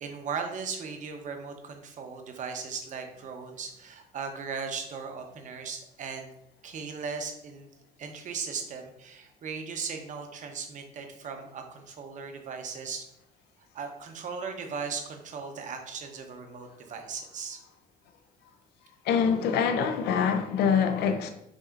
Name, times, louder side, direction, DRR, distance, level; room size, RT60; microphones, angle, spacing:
voice 1, 0.0-6.3 6.6-7.7 8.0-13.0 13.7-17.6, right 5 dB, 45° right, 5 dB, 0.8 m, -37 dB
voice 2, 19.1-21.3, left 7 dB, 75° left, 8 dB, 0.5 m, -25 dB
6.0 x 2.7 x 2.4 m, 0.79 s
cardioid pair, 110°, 17 cm